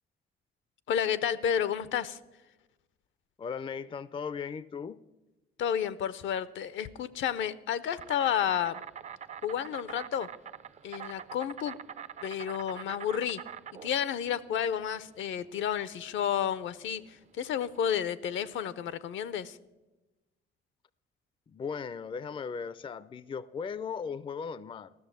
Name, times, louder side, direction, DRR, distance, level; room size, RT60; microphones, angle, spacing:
voice 1, 0.9-2.2 5.6-8.8 9.4-10.3 10.8-11.8 12.2-13.4 13.7-19.6, left 9 dB, 70° left, 16 dB, 0.6 m, -31 dB
voice 2, 3.4-5.0 21.5-24.9, left 6 dB, 25° left, 18 dB, 0.4 m, -37 dB
Insect, 8.0-18.0, right 8 dB, 35° right, 0.4 m, -45 dB
13.0 x 6.5 x 9.0 m, 1.1 s
cardioid pair, 90°, 20 cm